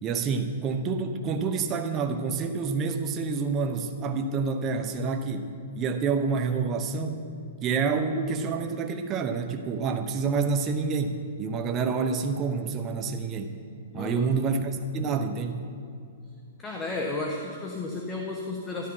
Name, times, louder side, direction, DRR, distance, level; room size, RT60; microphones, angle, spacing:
voice 1, 0.0-7.3 7.6-13.5 13.9-15.7, right 4 dB, 25° right, 6 dB, 1.1 m, -28 dB
voice 2, 13.9-14.3 16.6-18.9, left 2 dB, 15° left, 0 dB, 1.4 m, -33 dB
12.5 x 12.0 x 5.7 m, 2.5 s
hypercardioid pair, 140°, 0 cm